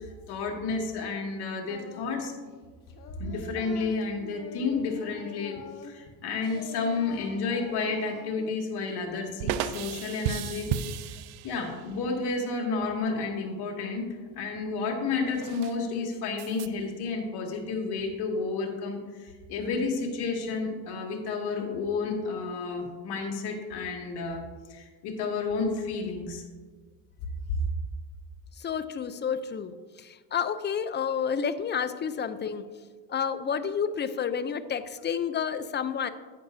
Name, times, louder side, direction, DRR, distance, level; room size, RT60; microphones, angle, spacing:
voice 1, 0.3-2.3 3.2-5.5 5.8-10.7 11.0-11.2 11.4-14.1 14.3-24.4 24.7-26.4, left 4 dB, 60° left, 0 dB, 2.2 m, -31 dB
Singing, 1.7-2.2 2.5-6.2 6.4-8.5, left 5 dB, 45° left, 1.3 m, -45 dB
sound 1, 6.4-6.9 9.4-12.0 15.3-15.8 16.4-16.7, right 9 dB, 60° right, 0.6 m, -34 dB
voice 2, 28.6-32.6 33.1-36.1, left 7 dB, 25° left, 12 dB, 0.5 m, -30 dB
10.5 x 9.1 x 2.7 m, 1.4 s
supercardioid pair, 95°, 44 cm